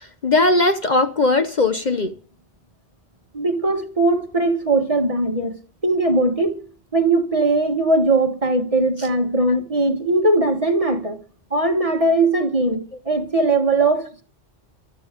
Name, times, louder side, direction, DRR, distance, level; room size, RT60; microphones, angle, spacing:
voice 1, 0.2-2.1 9.5-9.6, left 2 dB, 45° left, 1.0 m, -18 dB
voice 2, 3.3-5.6 5.8-6.6 6.9-11.2 11.5-14.2, right 2 dB, 30° right, 1.8 m, -20 dB
15.0 x 12.5 x 5.2 m
omnidirectional pair, 1.2 m